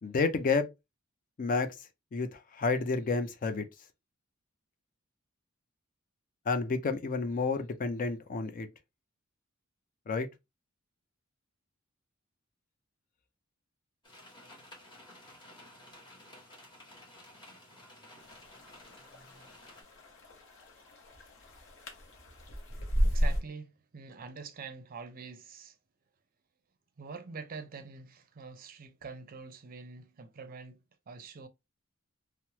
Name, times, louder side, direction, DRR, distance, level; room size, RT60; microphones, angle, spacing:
voice 1, 0.0-0.7 1.4-1.7 2.1-3.7 6.5-8.7 10.1-10.3, left 4 dB, 40° left, 0.4 m, -30 dB
sound 1, 14.0-19.8, left 1 dB, 20° left, 1.2 m, -54 dB
sound 2, 18.2-23.4, equal, 60° left, 0.8 m, -34 dB
voice 2, 23.0-25.8 27.0-30.8 31.1-31.5, right 5 dB, 45° right, 0.5 m, -45 dB
3.0 x 2.0 x 2.7 m
head